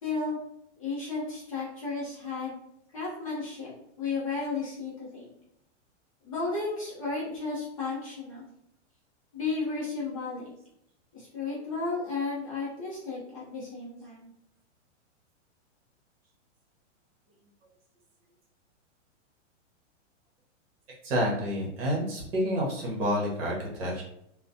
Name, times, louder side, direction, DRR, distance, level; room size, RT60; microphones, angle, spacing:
voice 1, 0.0-0.4 0.8-2.5 2.9-5.3 6.2-8.5 9.3-10.5 11.1-14.3, left 4 dB, 30° left, -7 dB, 0.5 m, -33 dB
voice 2, 21.0-24.0, equal, 50° right, -2 dB, 1.0 m, -29 dB
2.4 x 2.1 x 2.6 m, 0.76 s
supercardioid pair, 175°, 37 cm